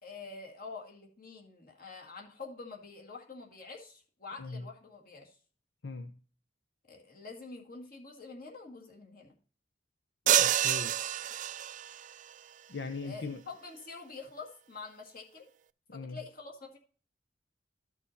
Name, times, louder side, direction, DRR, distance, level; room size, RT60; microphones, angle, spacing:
voice 1, 0.0-5.4 6.9-9.3 13.0-15.4 15.9-16.8, left 4 dB, 55° left, 0 dB, 1.9 m, -46 dB
voice 2, 5.8-6.1 10.4-10.9 12.7-13.4 15.9-16.2, left 3 dB, 80° left, 8 dB, 0.7 m, -39 dB
sound 1, 10.3-12.1, right 11 dB, 45° right, 0.3 m, -27 dB
13.5 x 6.1 x 2.7 m, 0.39 s
head